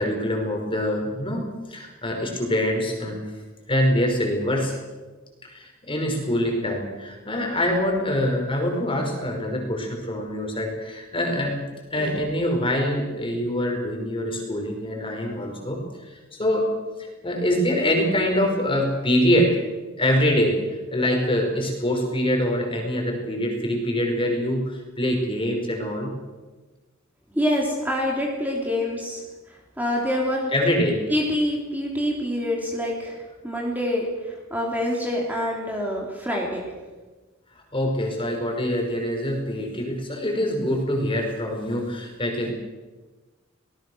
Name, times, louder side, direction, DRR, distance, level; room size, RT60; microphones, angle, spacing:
voice 1, 0.0-3.3 3.7-4.8 5.4-11.6 11.9-15.8 16.1-16.7 17.0-19.6 20.0-20.6 20.9-26.1 30.5-31.0 37.7-42.5, equal, 25° left, 2 dB, 5.5 m, -24 dB
voice 2, 27.3-29.2 29.8-30.5 31.1-36.6, left 1 dB, 10° right, -2 dB, 3.7 m, -26 dB
25.5 x 19.0 x 6.5 m, 1.2 s
head